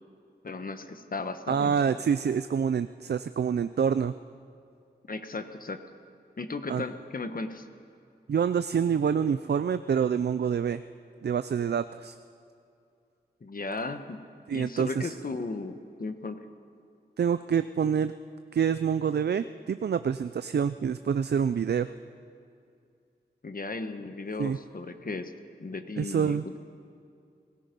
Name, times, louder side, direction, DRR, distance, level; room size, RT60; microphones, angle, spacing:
voice 1, 0.4-1.8 5.1-5.8 6.4-7.7 13.4-14.2 14.5-16.4 23.4-25.3 25.6-26.6, left 3 dB, 50° left, 8 dB, 1.3 m, -36 dB
voice 2, 1.5-4.1 6.7-6.8 8.3-10.8 11.2-12.1 14.5-15.1 17.2-18.1 18.5-21.9 24.4-24.6 26.0-26.4, right 7 dB, 65° right, 12 dB, 0.5 m, -27 dB
30.0 x 17.0 x 5.3 m, 2.5 s
wide cardioid pair, 75°, 18 cm